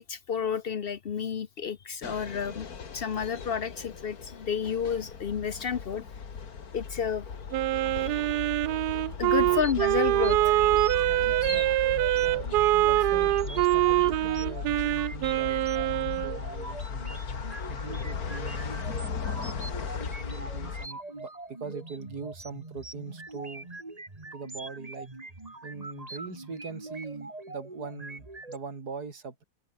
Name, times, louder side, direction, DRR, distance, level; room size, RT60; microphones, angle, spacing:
voice 1, 0.0-2.7 2.9-6.0 6.7-7.2 7.9-8.6 9.2-10.6, left 7 dB, 85° left, 0.5 m, -31 dB
sound 1, 2.0-20.9, left 6 dB, 45° left, 2.2 m, -37 dB
Wind instrument woodwind instrument, 7.5-16.4, right 16 dB, 75° right, 0.9 m, -24 dB
sound 2, 9.4-28.6, right 2 dB, 20° right, 2.5 m, -43 dB
voice 2, 10.9-11.8 12.1-19.6 20.3-23.7 24.3-25.1 25.6-29.4, right 5 dB, 50° right, 3.5 m, -42 dB
omnidirectional pair, 2.2 m